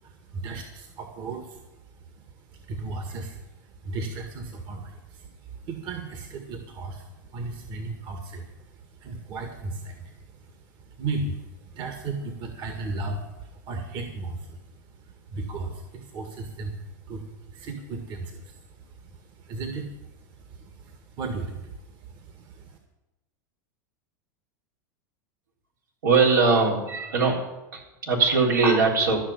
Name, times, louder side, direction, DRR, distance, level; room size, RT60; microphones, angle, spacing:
voice 1, 0.0-1.7 1.9-2.3 2.5-10.5 10.9-22.8, right 3 dB, 50° right, 4 dB, 1.9 m, -36 dB
voice 2, 26.0-27.5 27.7-29.2, right 4 dB, 85° right, -2 dB, 3.9 m, -21 dB
13.5 x 6.4 x 9.5 m, 0.99 s
hypercardioid pair, 105°, 10 cm